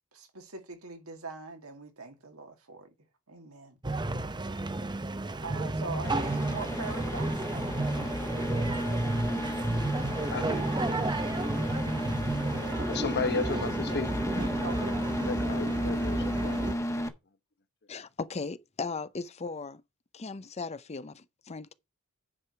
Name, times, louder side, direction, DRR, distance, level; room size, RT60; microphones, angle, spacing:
voice 1, 0.1-2.9 3.3-3.8 4.6-4.9 5.4-7.4 11.5-11.7 12.8-13.6 13.9-15.0, right 3 dB, 85° right, 2.4 m, -43 dB
sound 1, 3.8-16.7, right 2 dB, 20° right, 0.7 m, -32 dB
sound 2, 6.0-17.1, equal, 15° left, 1.2 m, -33 dB
voice 2, 10.3-10.7 12.9-14.2 15.2-17.1, left 4 dB, 50° left, 1.1 m, -34 dB
voice 3, 17.9-19.8 20.1-21.7, left 4 dB, 30° left, 0.6 m, -37 dB
9.8 x 4.9 x 5.8 m
head